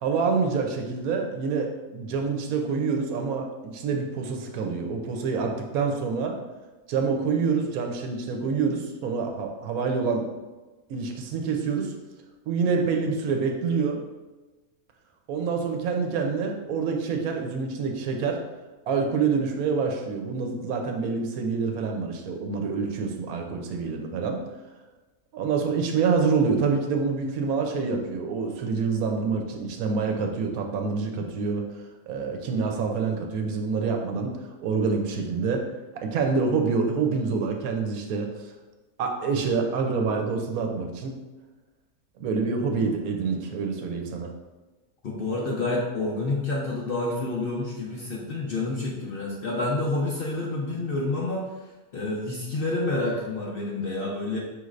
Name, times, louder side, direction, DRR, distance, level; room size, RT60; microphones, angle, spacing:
voice 1, 0.0-6.3 6.9-10.3 10.9-11.9 12.5-14.0 15.3-18.4 18.9-24.4 25.3-31.7 32.1-35.6 35.9-38.5 39.0-41.1 42.2-44.3, right 5 dB, 85° right, 3 dB, 1.1 m, -27 dB
voice 2, 45.0-51.5 51.9-54.4, left 2 dB, 60° left, -3 dB, 0.6 m, -28 dB
5.2 x 3.2 x 2.4 m, 1.2 s
omnidirectional pair, 1.5 m